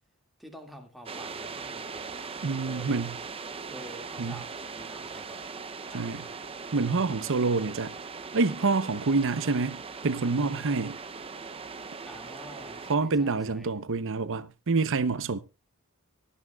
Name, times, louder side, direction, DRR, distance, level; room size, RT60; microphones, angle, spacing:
voice 1, 0.4-2.3 2.6-3.0 3.7-5.5 5.9-6.5 12.0-13.7, equal, ahead, 2.1 m, -48 dB
sound 1, 1.1-13.0, right 5 dB, 25° right, 0.6 m, -40 dB
voice 2, 2.4-3.2 4.2-4.4 5.9-6.3 6.7-7.9 8.3-11.0 12.9-15.4, right 4 dB, 60° right, 0.8 m, -27 dB
24.0 x 8.5 x 2.3 m
head